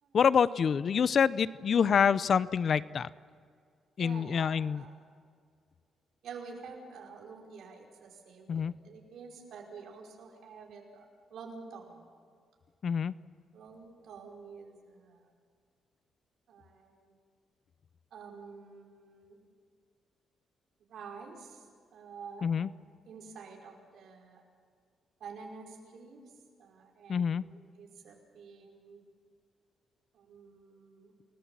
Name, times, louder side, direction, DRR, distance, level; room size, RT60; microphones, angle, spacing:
voice 1, 0.1-3.1 4.0-4.8 8.5-8.7 12.8-13.1 22.4-22.7 27.1-27.4, left 7 dB, 45° left, 17 dB, 0.6 m, -26 dB
voice 2, 4.0-5.0 6.2-12.0 13.5-15.3 16.5-17.1 18.1-19.4 20.9-21.6 21.9-22.5 23.0-24.4 25.2-26.2 26.6-29.0 30.1-31.1, right 5 dB, 70° right, 1 dB, 5.3 m, -49 dB
29.5 x 20.0 x 7.5 m, 2.1 s
cardioid pair, 130°, 0 cm